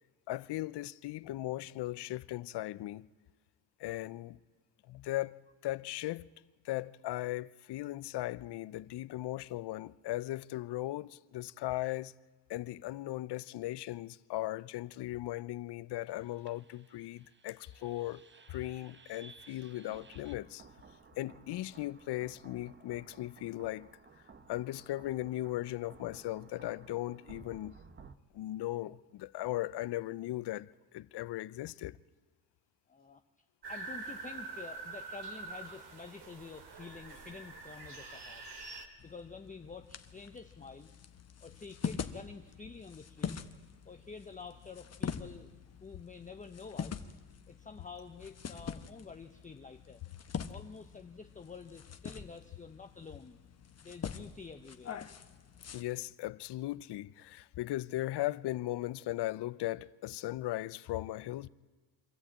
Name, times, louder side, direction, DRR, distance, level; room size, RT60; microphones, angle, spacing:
voice 1, 0.3-3.1 3.8-4.4 4.9-6.3 6.6-12.1 12.5-18.2 18.5-20.7 21.2-23.9 24.5-27.8 28.3-32.0 55.7-61.5, left 16 dB, 55° left, 0.6 m, -38 dB
sound 1, 16.1-28.2, right 5 dB, 25° right, 0.9 m, -57 dB
voice 2, 32.9-33.2 33.7-40.9 41.4-43.5 43.8-45.5 45.8-47.0 47.5-50.0 50.5-53.4 53.8-55.0, left 4 dB, 15° left, 0.7 m, -49 dB
sound 2, 33.6-38.9, right 3 dB, 55° right, 2.4 m, -45 dB
sound 3, 39.0-55.8, left 7 dB, 30° left, 1.1 m, -44 dB
24.5 x 13.5 x 8.7 m
cardioid pair, 100°, 48 cm